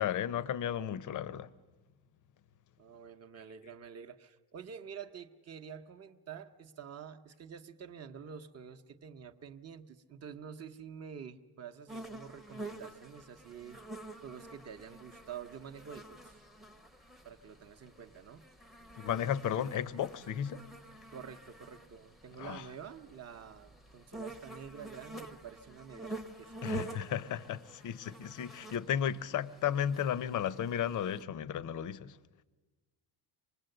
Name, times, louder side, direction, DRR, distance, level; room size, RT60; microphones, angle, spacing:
voice 1, 0.0-1.5 18.9-20.6 22.4-22.7 26.6-32.2, left 9 dB, 40° left, 0.6 m, -34 dB
voice 2, 2.8-16.4 17.2-18.4 21.1-26.6, right 7 dB, 35° right, 0.8 m, -48 dB
sound 1, 11.9-31.2, right 2 dB, ahead, 0.7 m, -48 dB
26.0 x 20.0 x 7.8 m
cardioid pair, 175°, 47 cm